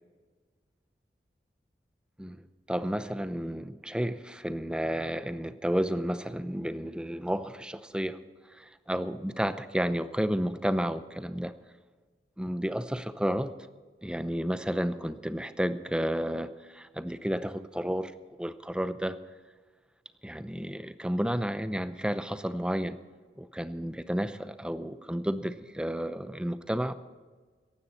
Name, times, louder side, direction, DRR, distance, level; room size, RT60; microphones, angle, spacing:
voice 1, 2.2-8.2 8.6-11.5 12.4-13.5 14.0-19.2 20.2-23.0 23.4-26.9, equal, 5° right, 12 dB, 0.6 m, -31 dB
18.0 x 15.0 x 4.3 m, 1.4 s
head